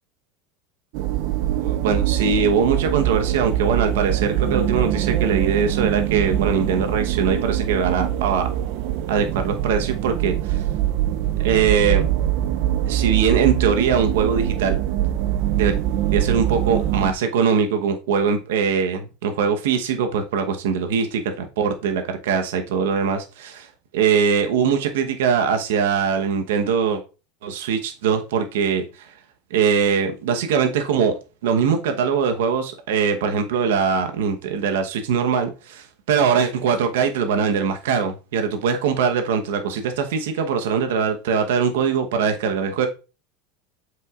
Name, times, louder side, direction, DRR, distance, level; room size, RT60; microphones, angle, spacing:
sound 1, 0.9-17.1, right 12 dB, 55° right, 0.4 m, -23 dB
voice 1, 1.5-8.5 9.1-10.6 11.4-12.1 12.8-14.8 15.6-15.7 16.1-27.0 27.4-29.1 29.5-31.1 31.4-42.9, right 6 dB, 90° right, 6 dB, 1.0 m, -22 dB
7.8 x 6.2 x 2.4 m, 0.32 s
supercardioid pair, 155°, 0 cm